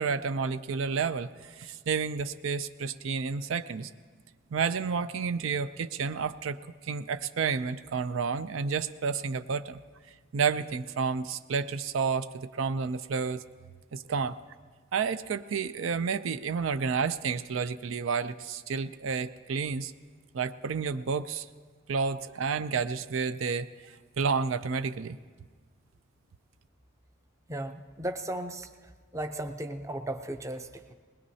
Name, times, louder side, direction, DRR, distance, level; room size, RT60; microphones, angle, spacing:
voice 1, 0.0-3.9 4.5-6.6 6.8-9.8 10.3-13.4 13.9-14.4 14.9-19.9 20.3-21.5 21.9-25.2, right 5 dB, 75° right, 12 dB, 0.4 m, -30 dB
voice 2, 27.5-30.9, right 1 dB, 15° right, 7 dB, 0.5 m, -36 dB
20.5 x 20.0 x 2.8 m, 1.5 s
head